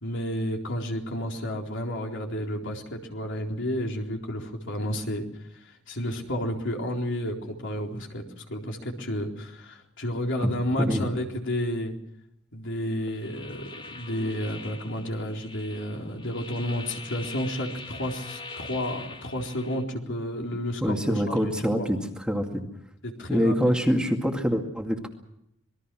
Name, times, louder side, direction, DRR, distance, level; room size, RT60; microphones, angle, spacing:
voice 1, 0.0-5.3 5.5-12.0 12.5-21.9 23.0-23.6, equal, 60° left, 2 dB, 4.0 m, -31 dB
sound 1, 13.1-19.8, left 3 dB, 25° left, 2.4 m, -43 dB
voice 2, 20.8-22.0 22.3-22.6 23.3-25.1, equal, 5° right, 3 dB, 2.3 m, -25 dB
26.5 x 21.0 x 6.2 m, 0.76 s
head